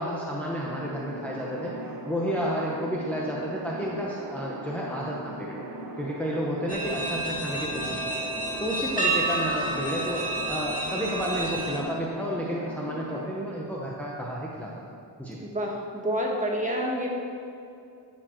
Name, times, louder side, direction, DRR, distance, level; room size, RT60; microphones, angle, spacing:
voice 1, 0.0-1.7 2.1-5.6 6.0-8.3 8.6-14.7 15.2-15.4, equal, 5° left, -5 dB, 0.9 m, -31 dB
sound 1, 0.6-13.3, right 1 dB, 50° right, 1.8 m, -39 dB
sound 2, 6.7-11.8, right 2 dB, 20° left, 1.6 m, -30 dB
voice 2, 15.4-17.1, equal, 15° right, -2 dB, 1.4 m, -28 dB
12.0 x 7.1 x 4.5 m, 2.5 s
wide cardioid pair, 150°, 42 cm